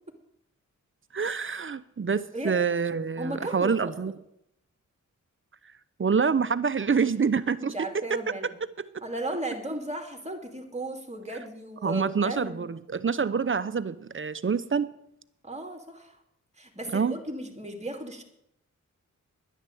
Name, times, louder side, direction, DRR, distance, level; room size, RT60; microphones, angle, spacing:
voice 1, 1.1-4.1 6.0-7.7 11.8-14.9 16.9-17.1, right 5 dB, 40° right, 15 dB, 0.7 m, -26 dB
voice 2, 3.2-4.1 7.6-8.5 9.0-12.7 15.4-16.2 16.6-18.2, right 1 dB, 20° right, 3 dB, 2.8 m, -35 dB
11.0 x 10.0 x 7.8 m, 0.77 s
cardioid pair, 70°, 32 cm